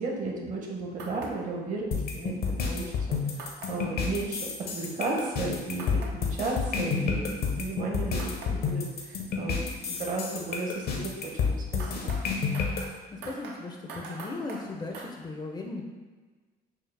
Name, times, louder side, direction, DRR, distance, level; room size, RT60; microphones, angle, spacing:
voice 1, 0.0-3.2 3.7-12.1, right 3 dB, 50° right, 0 dB, 0.8 m, -34 dB
sound 1, 1.0-1.3 3.4-3.7 5.8-6.1 8.2-8.5 11.8-15.1, right 3 dB, 85° right, 0.6 m, -42 dB
sound 2, 1.9-12.8, left 5 dB, 70° left, 0.7 m, -29 dB
voice 2, 13.1-15.8, left 3 dB, 25° left, 1 dB, 0.4 m, -37 dB
4.6 x 2.0 x 3.2 m, 1.4 s
cardioid pair, 110°, 17 cm